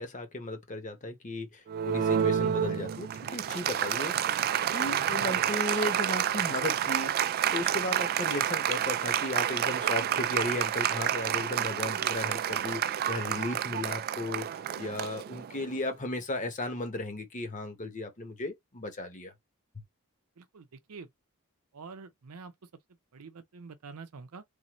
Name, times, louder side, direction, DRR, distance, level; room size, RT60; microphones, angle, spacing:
voice 1, 0.0-4.2 4.7-14.5 14.8-19.3, left 2 dB, 35° left, 1.1 m, -35 dB
Applause, 1.7-15.8, right 9 dB, 45° right, 0.3 m, -29 dB
voice 2, 20.4-21.1 21.7-22.5 23.1-24.4, right 4 dB, 90° right, 0.6 m, -46 dB
3.7 x 2.6 x 3.1 m
head